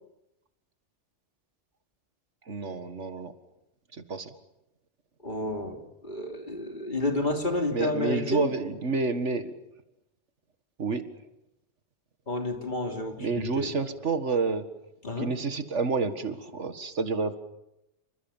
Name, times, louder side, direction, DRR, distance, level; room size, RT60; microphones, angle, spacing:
voice 1, 2.5-3.3 3.9-4.3 7.7-9.5 10.8-11.1 13.2-14.7 15.2-17.3, right 4 dB, 85° right, 9 dB, 2.1 m, -29 dB
voice 2, 5.2-8.5 12.3-13.7 15.0-15.3, left 2 dB, 45° left, 3 dB, 3.4 m, -30 dB
27.5 x 26.0 x 7.3 m, 0.88 s
omnidirectional pair, 1.2 m